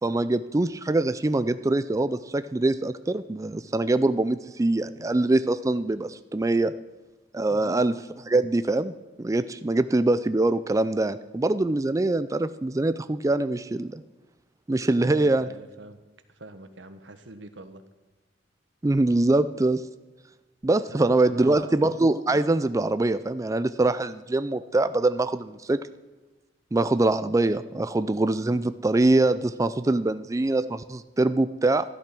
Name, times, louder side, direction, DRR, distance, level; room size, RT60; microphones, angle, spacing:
voice 1, 0.0-6.7 7.3-7.9 8.3-14.0 14.7-15.5 18.8-19.8 20.6-25.8 26.7-31.8, right 2 dB, 20° right, 12 dB, 0.4 m, -23 dB
voice 2, 7.5-7.9 15.0-16.0 16.3-17.8 20.9-21.8, right 2 dB, 85° right, 9 dB, 1.4 m, -44 dB
13.5 x 12.0 x 6.0 m, 1.2 s
head